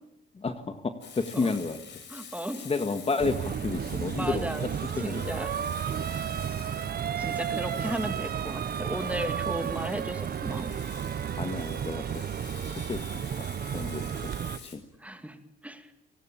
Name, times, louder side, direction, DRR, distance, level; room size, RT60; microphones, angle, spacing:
voice 1, 0.3-1.8 2.6-4.5 5.0-5.3 11.4-12.2 12.6-13.0 13.4-13.5 13.7-14.4 14.6-14.8, left 4 dB, 30° left, 8 dB, 1.8 m, -31 dB
Frying (food), 1.0-14.8, left 6 dB, 65° left, 6.6 m, -48 dB
voice 2, 2.1-2.6 4.1-4.7 5.0-5.5 7.2-10.8 15.0-15.4 15.6-15.9, right 1 dB, 5° right, 8 dB, 2.5 m, -35 dB
sound 1, 3.2-14.6, right 8 dB, 50° right, 1.0 m, -32 dB
29.5 x 18.5 x 8.8 m, 0.87 s
cardioid pair, 90°, 20 cm